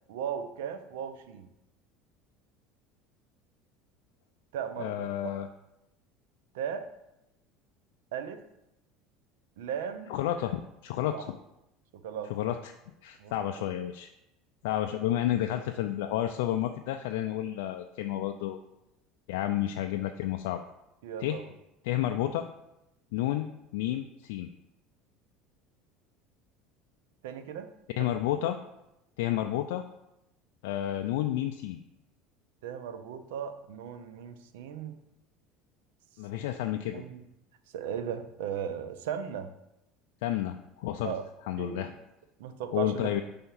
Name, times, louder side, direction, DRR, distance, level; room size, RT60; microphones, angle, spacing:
voice 1, 0.1-1.5 4.5-5.3 6.5-6.9 8.1-8.4 9.6-10.1 11.1-11.3 12.0-12.3 13.2-13.7 21.0-21.4 27.2-27.7 28.0-28.1 32.6-35.0 36.9-37.2 37.7-39.5 41.0-41.2 41.6-41.8 42.4-43.2, right 8 dB, 90° right, 9 dB, 0.5 m, -37 dB
voice 2, 4.8-5.5 10.1-11.3 12.3-12.7 13.0-14.1 14.6-18.6 19.3-20.6 21.2-21.4 21.8-22.5 23.1-24.5 28.0-28.6 29.2-29.8 30.6-31.8 36.2-37.0 40.2-41.1 41.5-41.9 42.7-43.2, left 12 dB, 85° left, 5 dB, 0.3 m, -31 dB
5.6 x 3.5 x 5.5 m, 0.88 s
supercardioid pair, 115°, 0 cm